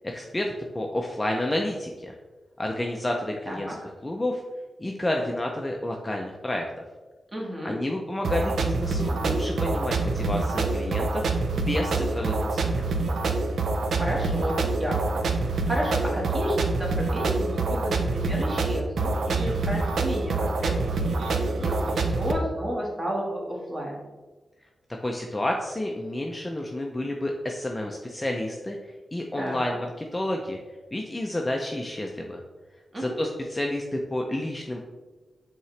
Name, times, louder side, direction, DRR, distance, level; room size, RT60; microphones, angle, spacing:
voice 1, 0.0-2.1 2.6-3.7 4.0-4.4 4.8-6.6 7.6-11.3 11.5-12.9 25.0-29.9 30.1-30.6 30.9-32.4 33.0-34.8, left 1 dB, 15° left, 1 dB, 0.5 m, -30 dB
voice 2, 3.5-3.8 7.3-7.8 13.9-24.0 29.4-29.8 32.9-33.2, equal, 20° right, -2 dB, 1.5 m, -32 dB
electro wave, 8.2-22.3, right 3 dB, 80° right, 0.6 m, -26 dB
8.3 x 3.8 x 3.2 m, 1.2 s
wide cardioid pair, 165°, 0 cm